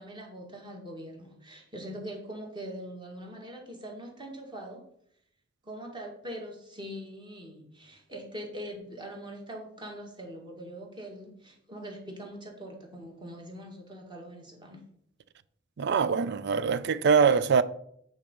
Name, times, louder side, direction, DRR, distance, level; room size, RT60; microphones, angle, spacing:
voice 1, 0.0-4.8 5.6-14.8, equal, 25° right, 1.7 m, -42 dB
voice 2, 15.8-17.6, right 6 dB, 55° right, 0.4 m, -23 dB
8.8 x 3.9 x 5.2 m
head